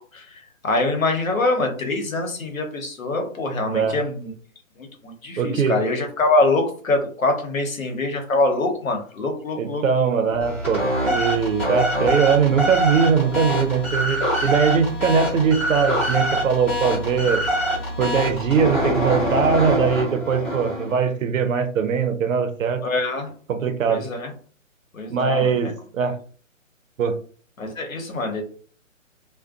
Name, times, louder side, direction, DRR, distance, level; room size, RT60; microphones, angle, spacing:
voice 1, 0.6-4.3 4.8-9.8 22.8-23.3 23.9-24.3 24.9-25.7 27.6-28.4, left 2 dB, 85° left, 4 dB, 1.0 m, -24 dB
voice 2, 3.7-4.0 5.4-5.8 9.6-10.8 11.1-17.4 18.0-22.8 23.5-24.0 25.1-26.2 27.0-27.2, right 6 dB, 75° right, 8 dB, 0.6 m, -21 dB
sound 1, 10.4-21.0, equal, 15° left, 0.7 m, -24 dB
2.5 x 2.2 x 2.4 m, 0.43 s
hypercardioid pair, 155°, 40 cm